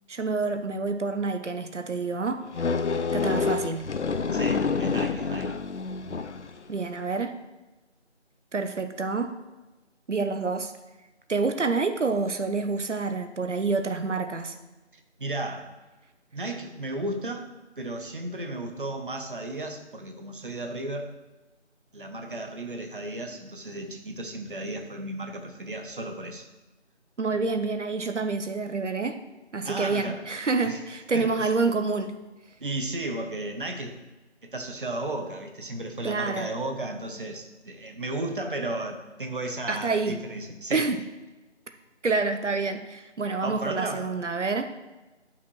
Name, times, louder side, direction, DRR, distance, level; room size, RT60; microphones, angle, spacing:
voice 1, 0.1-2.4 3.1-3.9 6.7-7.4 8.5-9.3 10.1-10.7 11.3-14.6 27.2-29.2 29.5-32.2 36.0-36.5 39.7-40.2 40.7-41.0 42.0-44.8, right 4 dB, 90° right, 8 dB, 0.8 m, -28 dB
sound 1, 2.5-6.6, left 4 dB, 75° left, 0.6 m, -27 dB
voice 2, 4.3-5.6 15.2-15.7 16.3-17.5 17.8-21.1 21.9-26.5 29.6-30.2 30.6-30.8 31.1-31.5 32.6-34.0 34.4-40.9 43.4-44.1, right 2 dB, 45° right, 5 dB, 0.9 m, -34 dB
10.5 x 5.8 x 3.1 m, 1.1 s
figure-of-eight pair, 170°, 35 cm